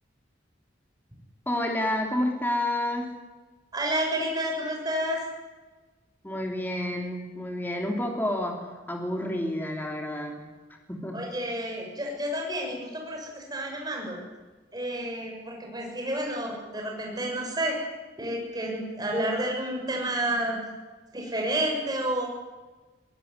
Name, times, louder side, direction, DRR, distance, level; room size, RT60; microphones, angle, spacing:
voice 1, 1.5-3.1 6.2-10.4 10.9-11.2, left 1 dB, 10° left, 1 dB, 3.3 m, -29 dB
voice 2, 3.7-5.2 11.1-14.2 14.7-17.8 18.2-20.6 21.1-22.2, right 1 dB, 20° right, 0 dB, 6.8 m, -30 dB
21.5 x 19.0 x 9.8 m, 1.2 s
head